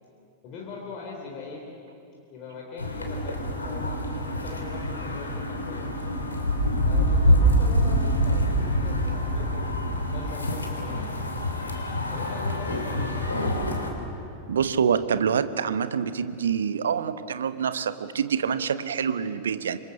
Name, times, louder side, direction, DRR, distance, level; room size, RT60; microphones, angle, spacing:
voice 1, 0.4-1.7 2.3-5.9 6.8-9.7 10.1-11.1 12.1-13.2, left 4 dB, 40° left, -1 dB, 3.9 m, -41 dB
sound 1, 2.8-13.9, equal, 75° left, 3.1 m, -25 dB
voice 2, 14.5-19.8, right 7 dB, 65° right, 13 dB, 1.0 m, -26 dB
27.0 x 24.5 x 7.1 m, 2.7 s
figure-of-eight pair, 90°, 0 cm